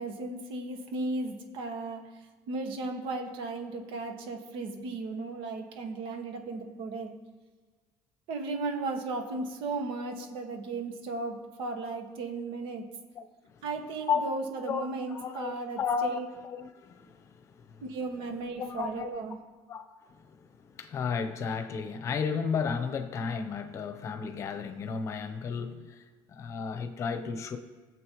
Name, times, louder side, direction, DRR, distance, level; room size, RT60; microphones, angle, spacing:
voice 1, 0.0-2.0 2.5-7.1 8.3-12.9 13.6-16.3 17.8-19.4, right 3 dB, 65° right, 4 dB, 1.7 m, -35 dB
voice 2, 13.2-13.6 14.1-14.2 14.7-17.8 18.6-19.1 19.7-27.6, left 6 dB, 35° left, 8 dB, 0.9 m, -34 dB
20.0 x 7.5 x 3.1 m, 1.4 s
cardioid pair, 160°, 9 cm